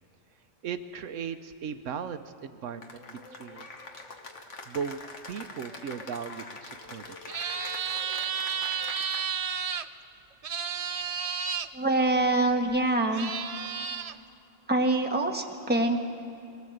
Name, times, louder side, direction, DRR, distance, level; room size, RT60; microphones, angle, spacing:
voice 1, 0.6-3.7 4.7-5.0 5.3-7.2, right 7 dB, 75° right, 9 dB, 1.0 m, -37 dB
Cheering / Applause, 2.8-9.5, left 3 dB, 70° left, 1.8 m, -44 dB
sound 1, 7.3-9.9 10.4-11.7 12.7-12.8 13.1-14.1, right 7 dB, 55° right, 0.4 m, -32 dB
voice 2, 11.7-13.3 14.7-16.1, right 2 dB, 10° right, 2 dB, 1.3 m, -25 dB
21.5 x 17.0 x 7.9 m, 2.9 s
omnidirectional pair, 1.3 m